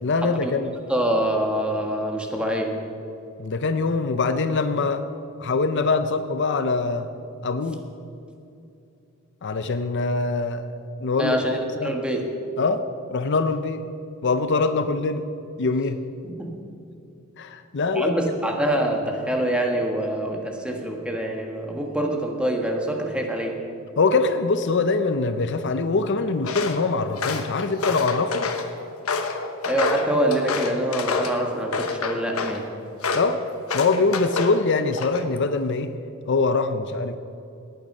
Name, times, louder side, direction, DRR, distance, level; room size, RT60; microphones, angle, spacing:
voice 1, 0.0-0.7 3.4-5.0 5.4-7.1 7.4-7.8 9.4-11.4 11.8-12.0 12.6-12.8 13.1-13.8 14.2-15.2 15.6-16.0 17.4-18.1 24.0-28.5 33.1-33.4 33.7-35.9 36.3-37.1, left 3 dB, 55° left, 10 dB, 0.6 m, -23 dB
voice 2, 0.9-2.7 11.2-12.3 16.2-16.6 17.9-23.6 29.7-32.7, right 1 dB, 5° right, 1 dB, 1.4 m, -25 dB
Walk footsteps, 26.4-26.8 27.2-28.7 29.1-31.4 31.7-32.6 33.0-33.3 33.7-34.6 34.9-35.4, left 4 dB, 80° left, 1.1 m, -27 dB
18.5 x 9.2 x 5.5 m, 2.7 s
head